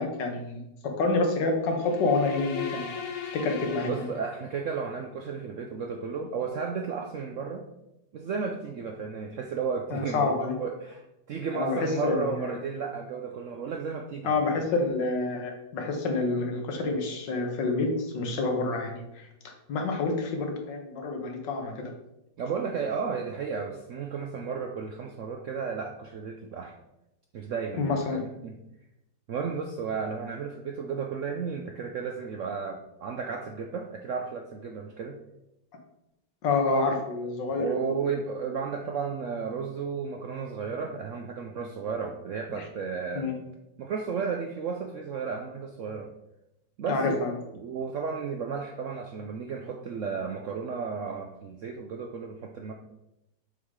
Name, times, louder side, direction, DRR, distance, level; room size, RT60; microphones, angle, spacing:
voice 1, 0.0-2.9 3.3-4.1 9.9-10.6 11.5-12.4 14.2-21.9 27.8-28.2 36.4-38.0 42.6-42.7 43.2-43.3 46.9-47.3, left 3 dB, 80° left, 3 dB, 1.8 m, -28 dB
sound 1, 1.7-4.8, left 6 dB, 55° left, 1.1 m, -38 dB
voice 2, 3.8-7.6 8.1-10.3 10.6-14.4 22.4-26.8 27.3-28.6 29.3-35.2 37.5-43.3 43.8-46.1 46.8-47.3 47.5-52.7, right 5 dB, 70° right, 3 dB, 0.7 m, -33 dB
7.0 x 4.8 x 3.7 m, 0.89 s
omnidirectional pair, 1.9 m